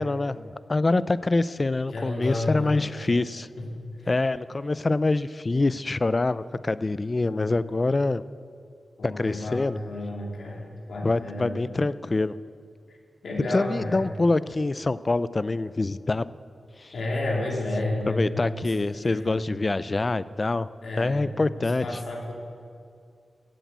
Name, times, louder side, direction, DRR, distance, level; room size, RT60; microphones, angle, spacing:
voice 1, 0.0-3.5 4.1-8.2 9.0-9.8 11.0-12.4 13.5-16.3 16.8-16.9 18.1-20.7 21.0-21.9, left 2 dB, 35° left, 16 dB, 0.5 m, -25 dB
voice 2, 1.9-3.1 3.6-3.7 4.0-4.1 9.0-11.6 12.9-13.0 13.2-14.0 16.9-19.3 20.8-22.3, left 2 dB, 80° left, -2 dB, 3.2 m, -31 dB
15.5 x 8.1 x 8.2 m, 2.2 s
wide cardioid pair, 75°, 0 cm